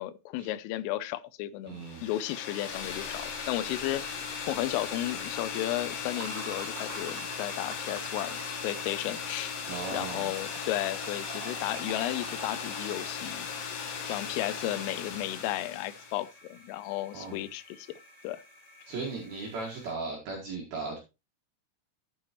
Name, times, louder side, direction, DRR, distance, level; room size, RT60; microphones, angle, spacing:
voice 1, 0.0-9.6 9.9-13.5 14.1-18.0 18.2-18.4, left 14 dB, 85° left, 3.1 m, -34 dB
voice 2, 1.7-2.0 9.7-10.3 14.6-14.7 17.1-17.4 18.9-21.0, right 3 dB, 55° right, 3.1 m, -37 dB
Hair Dryer, 1.8-16.3, left 6 dB, 60° left, 3.7 m, -37 dB
sound 1, 2.7-19.9, left 2 dB, 25° left, 0.9 m, -51 dB
sound 2, 6.1-13.4, right 9 dB, 80° right, 3.4 m, -48 dB
13.0 x 7.8 x 2.9 m
omnidirectional pair, 5.9 m